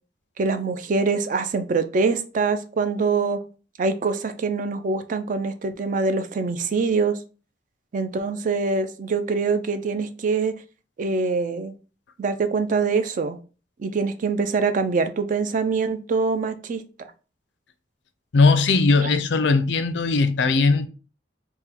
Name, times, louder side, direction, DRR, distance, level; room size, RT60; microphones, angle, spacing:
voice 1, 0.4-3.4 3.8-7.2 7.9-10.6 11.0-11.7 12.2-13.4 13.8-16.8, right 4 dB, 45° right, 0.4 m, -24 dB
voice 2, 18.3-20.9, left 3 dB, 70° left, 0.4 m, -19 dB
3.7 x 2.1 x 4.2 m
head